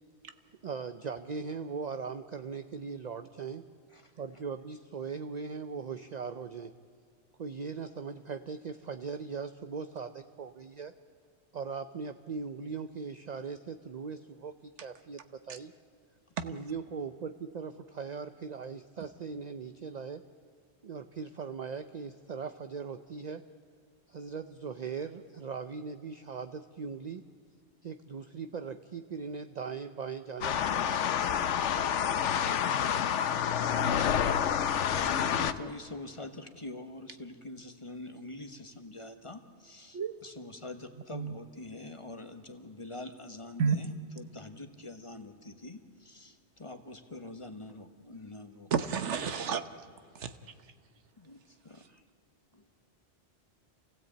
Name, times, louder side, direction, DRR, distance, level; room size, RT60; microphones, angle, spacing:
voice 1, 0.6-3.6 4.2-6.7 7.4-10.9 11.5-15.7 16.4-20.2 20.8-23.4 24.1-27.2 27.8-31.0 41.1-41.4 51.9-52.0, right 5 dB, 45° right, 9 dB, 0.7 m, -39 dB
sound 1, 30.4-35.5, left 8 dB, 85° left, 1.1 m, -28 dB
voice 2, 34.9-48.7 51.2-51.9 52.5-52.7, left 2 dB, 30° left, 7 dB, 1.2 m, -45 dB
voice 3, 48.7-49.6 50.2-50.3, right 6 dB, 80° right, 10 dB, 1.3 m, -30 dB
27.5 x 16.0 x 8.6 m, 2.2 s
omnidirectional pair, 1.2 m